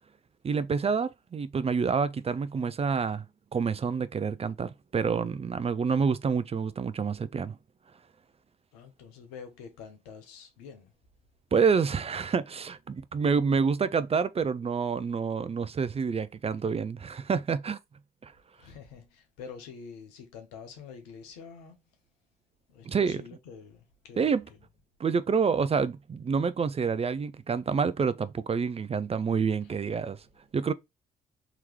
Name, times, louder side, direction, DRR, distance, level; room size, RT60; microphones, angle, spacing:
voice 1, 0.4-3.2 3.5-7.6 11.5-17.8 18.2-18.3 22.8-23.2 24.2-24.4 25.0-30.2 30.5-30.7, right 5 dB, 30° right, 0.5 m, -28 dB
voice 2, 8.7-10.9 18.5-21.8 22.7-24.6 29.6-29.7, left 6 dB, 80° left, 0.9 m, -47 dB
3.6 x 3.0 x 3.0 m
hypercardioid pair, 45°, 20 cm